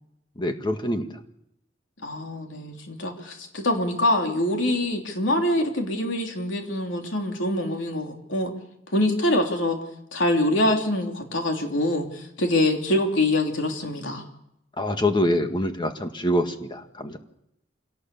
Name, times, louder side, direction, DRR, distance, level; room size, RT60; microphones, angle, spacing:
voice 1, 0.4-1.1 14.8-17.2, left 1 dB, 25° left, 6 dB, 1.7 m, -25 dB
voice 2, 2.0-8.5 8.9-9.8 10.1-14.2, left 1 dB, 80° left, 2 dB, 3.4 m, -24 dB
26.0 x 18.0 x 7.0 m, 0.80 s
head